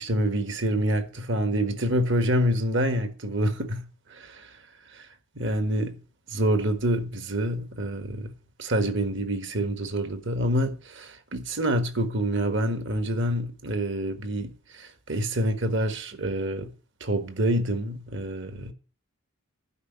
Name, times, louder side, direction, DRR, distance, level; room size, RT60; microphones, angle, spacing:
voice 1, 0.0-4.5 4.9-5.1 5.3-6.0 6.3-8.3 8.6-16.7 17.0-18.7, right 1 dB, 55° right, 1.5 m, -27 dB
11.5 x 5.4 x 7.9 m
head